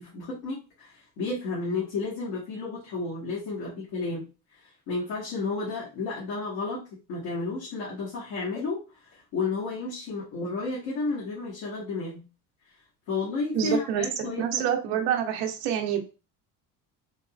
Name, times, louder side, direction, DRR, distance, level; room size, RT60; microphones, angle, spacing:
voice 1, 0.0-4.3 4.9-6.8 7.1-8.8 9.1-12.3 13.1-14.6 14.9-15.0, left 3 dB, 70° left, -7 dB, 1.8 m, -32 dB
voice 2, 13.5-14.0 14.4-16.0, right 9 dB, 90° right, 5 dB, 0.8 m, -27 dB
4.1 x 3.0 x 2.5 m, 0.32 s
supercardioid pair, 85°, 46 cm